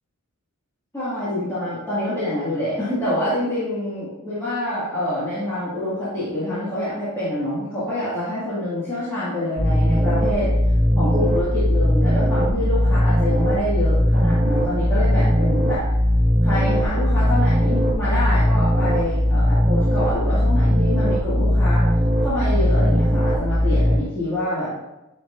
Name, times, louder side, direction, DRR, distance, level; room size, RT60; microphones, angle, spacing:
voice 1, 0.9-10.5 11.0-15.8 16.4-21.9 22.2-24.9, left 1 dB, 10° left, -14 dB, 2.2 m, -26 dB
sound 1, 9.6-24.0, equal, 40° right, 0.9 m, -19 dB
9.5 x 4.4 x 2.7 m, 0.94 s
head